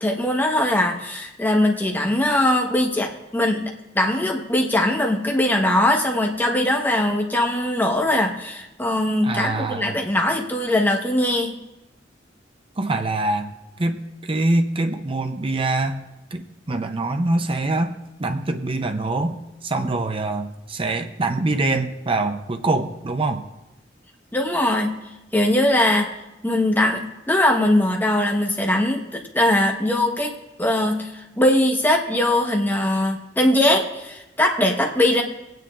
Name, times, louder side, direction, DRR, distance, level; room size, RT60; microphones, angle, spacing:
voice 1, 0.0-11.5 24.3-24.9 25.3-26.1 26.4-35.2, left 1 dB, 10° left, 1 dB, 1.1 m, -21 dB
voice 2, 9.2-10.0 12.8-13.5 13.8-16.0 16.3-17.9 18.2-23.4, right 2 dB, 30° right, 7 dB, 0.6 m, -24 dB
22.0 x 9.3 x 2.5 m, 0.95 s
head